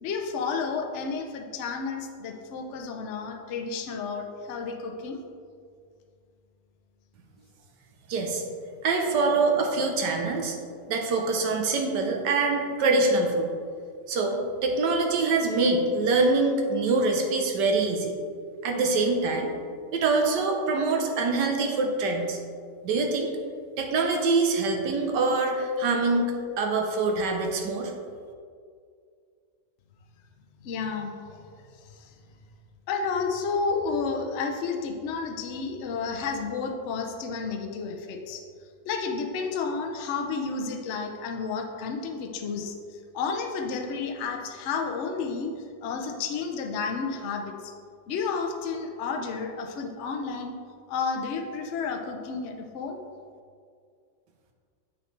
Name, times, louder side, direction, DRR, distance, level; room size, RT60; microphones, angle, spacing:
voice 1, 0.0-5.2 30.6-32.1 32.9-38.4 38.8-45.5 45.8-47.7 48.1-50.5 50.9-53.0, left 5 dB, 90° left, 3 dB, 0.6 m, -31 dB
voice 2, 8.1-8.4 8.8-10.5 10.9-13.5 14.1-18.1 18.6-19.5 19.9-22.4 22.8-23.3 23.8-27.9, right 3 dB, 70° right, 2 dB, 1.4 m, -24 dB
7.7 x 6.0 x 3.2 m, 2.2 s
omnidirectional pair, 2.1 m